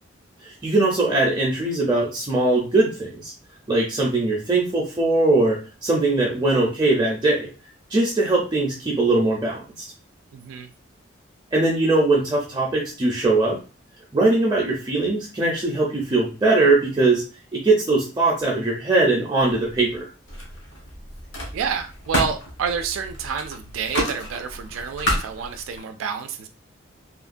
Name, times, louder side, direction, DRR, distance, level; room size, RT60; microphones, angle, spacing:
voice 1, 0.4-3.3 3.7-7.5 7.9-9.9 11.5-13.6 14.1-17.2 17.5-20.1, right 2 dB, 20° right, -3 dB, 0.5 m, -21 dB
voice 2, 10.3-10.7 21.5-26.5, right 6 dB, 90° right, 7 dB, 0.3 m, -29 dB
Camera, 19.6-20.0 20.3-25.8, equal, 70° left, 1.1 m, -30 dB
3.0 x 2.1 x 2.5 m, 0.34 s
head